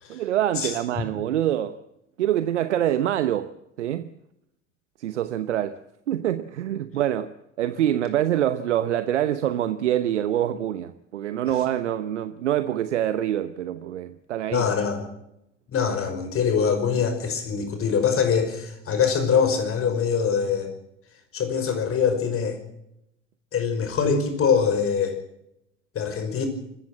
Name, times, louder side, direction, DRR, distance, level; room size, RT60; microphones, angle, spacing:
voice 1, 0.1-1.8 2.2-4.1 5.0-5.8 6.1-14.7, right 11 dB, 75° right, 1.0 m, -25 dB
voice 2, 14.5-15.1 15.7-20.7 21.3-22.6 23.5-25.2 25.9-26.5, left 6 dB, 40° left, 5.6 m, -23 dB
25.5 x 14.5 x 7.5 m
figure-of-eight pair, 70°, 36 cm